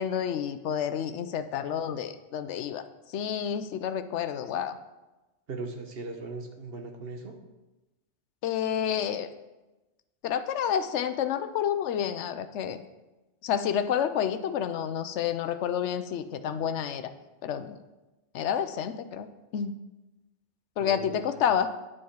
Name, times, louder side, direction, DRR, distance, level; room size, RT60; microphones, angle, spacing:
voice 1, 0.0-2.8 3.1-4.8 8.4-9.3 10.2-12.8 13.4-17.1 17.4-17.8 18.3-19.3 19.5-19.8 20.8-21.7, left 9 dB, 85° left, 10 dB, 0.9 m, -29 dB
voice 2, 5.5-7.4 20.8-21.4, right 3 dB, 60° right, 3 dB, 1.3 m, -39 dB
9.9 x 7.1 x 4.6 m, 1.1 s
omnidirectional pair, 1.2 m